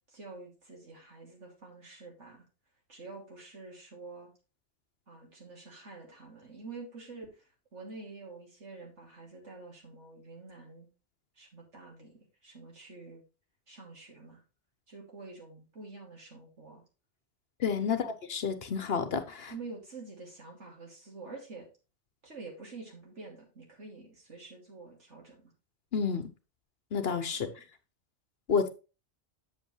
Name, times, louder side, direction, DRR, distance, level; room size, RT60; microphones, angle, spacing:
voice 1, 0.1-2.4 2.9-4.3 5.1-10.9 11.4-13.2 13.7-14.4 14.9-16.8 17.9-18.0 19.5-21.7 22.2-25.5 27.4-27.7, right 3 dB, 85° right, 3.2 m, -47 dB
voice 2, 17.6-19.5 25.9-26.3 26.9-27.5 28.5-28.7, left 6 dB, 60° left, 1.1 m, -30 dB
7.8 x 7.7 x 3.2 m
omnidirectional pair, 1.2 m